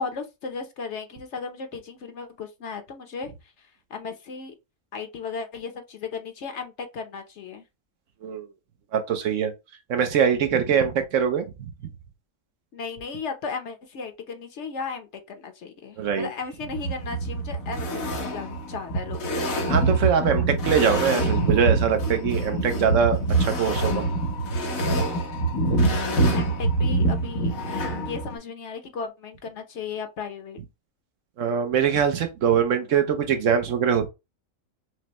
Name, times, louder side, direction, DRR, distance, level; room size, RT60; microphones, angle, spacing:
voice 1, 0.0-3.3 3.6-4.5 4.9-7.6 12.7-19.5 26.3-27.5 28.1-30.6, left 5 dB, 60° left, 1.0 m, -35 dB
voice 2, 8.9-9.5 9.9-11.9 16.0-16.3 19.7-24.1 31.4-34.1, right 7 dB, 70° right, 1.1 m, -23 dB
sound 1, 16.7-28.4, right 2 dB, 90° left, 1.5 m, -25 dB
6.0 x 2.1 x 2.9 m
omnidirectional pair, 1.4 m